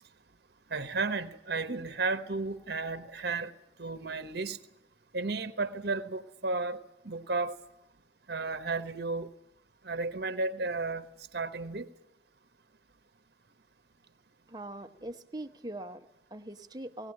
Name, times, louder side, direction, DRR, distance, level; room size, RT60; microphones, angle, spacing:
voice 1, 0.7-3.5 3.8-4.6 5.1-7.6 8.3-9.3 9.8-11.0 11.3-11.9, right 3 dB, 55° right, 1.1 m, -33 dB
voice 2, 14.5-17.1, right 1 dB, 20° right, 1.0 m, -42 dB
19.0 x 17.5 x 10.0 m
head